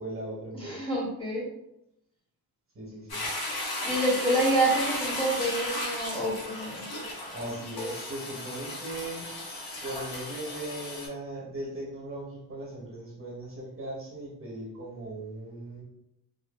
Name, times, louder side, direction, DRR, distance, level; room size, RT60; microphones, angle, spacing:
voice 1, 0.0-0.8 2.7-3.2 7.3-9.3 9.8-15.8, right 1 dB, 35° right, -3 dB, 0.6 m, -38 dB
voice 2, 0.5-1.5 3.8-6.9, right 1 dB, 15° left, -5 dB, 0.5 m, -27 dB
Toilet flush, 3.1-11.1, left 1 dB, 85° left, 0.7 m, -35 dB
2.6 x 2.1 x 2.2 m, 0.82 s
wide cardioid pair, 170°, 37 cm